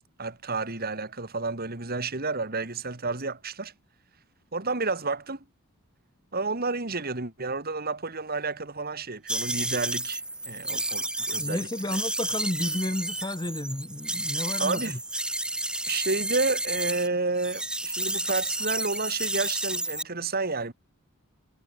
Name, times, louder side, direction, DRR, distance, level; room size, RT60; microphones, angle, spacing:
voice 1, 0.2-3.7 4.5-5.4 6.3-11.7 14.6-15.0 15.9-20.7, right 3 dB, 45° right, 2.7 m, -30 dB
sound 1, 9.3-17.1 17.4-20.0, right 1 dB, 5° right, 2.8 m, -31 dB
voice 2, 11.4-15.0, left 1 dB, 20° left, 1.0 m, -32 dB
head